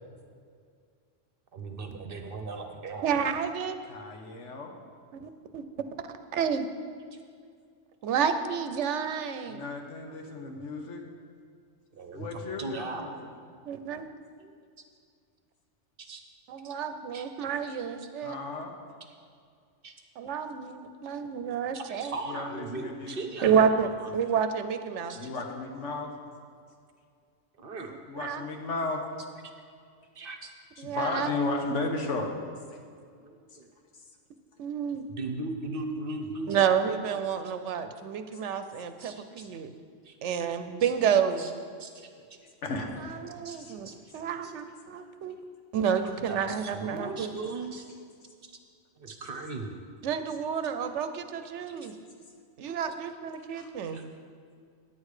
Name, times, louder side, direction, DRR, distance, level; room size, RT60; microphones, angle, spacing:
voice 1, 1.5-3.1 10.3-10.6 11.9-13.0 14.4-14.5 16.0-16.2 16.6-16.7 17.1-17.2 19.8-19.9 21.7-24.1 25.1-25.3 27.6-28.0 30.2-30.5 32.8-33.7 35.1-36.6 39.0-39.5 40.0-40.2 40.8-40.9 41.4-41.5 41.8-42.1 43.4-43.6 43.8-44.0 44.4-44.5 46.0-47.9 48.4-48.5 49.0-49.8 51.7-51.9 53.9-54.1, right 3 dB, 55° right, 5 dB, 0.9 m, -38 dB
voice 2, 3.0-3.8 5.1-5.6 6.3-6.7 8.0-9.6 13.7-14.0 16.5-18.4 20.2-22.2 23.4-25.2 28.2-28.4 30.8-31.3 34.6-35.1 36.5-39.7 40.2-41.6 43.0-45.4 45.7-47.3 50.0-52.0 52.6-54.0, right 7 dB, 75° right, 9 dB, 0.9 m, -29 dB
voice 3, 3.9-4.7 9.5-11.0 12.1-13.2 18.2-18.7 22.2-23.2 25.1-26.1 28.1-29.0 30.8-32.3 32.7-32.8 39.4-39.5 42.6-43.2 43.5-43.8 53.5-54.0, left 3 dB, 75° left, 2 dB, 1.4 m, -34 dB
9.6 x 8.4 x 4.9 m, 2.2 s
omnidirectional pair, 1.2 m